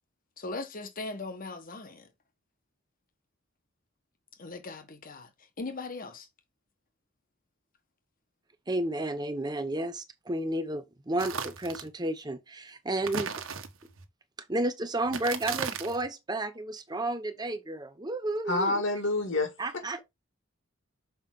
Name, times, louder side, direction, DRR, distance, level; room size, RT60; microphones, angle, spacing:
voice 1, 0.4-2.1 4.4-5.3 5.6-6.3, left 3 dB, 45° left, 1.4 m, -39 dB
voice 2, 8.7-13.3 14.5-18.8 19.6-20.0, right 1 dB, 20° right, 0.8 m, -32 dB
sound 1, 11.2-11.9 13.0-14.1 15.0-16.1, right 6 dB, 80° right, 1.3 m, -36 dB
voice 3, 18.5-20.0, left 2 dB, 65° left, 2.5 m, -29 dB
6.9 x 5.3 x 3.8 m
head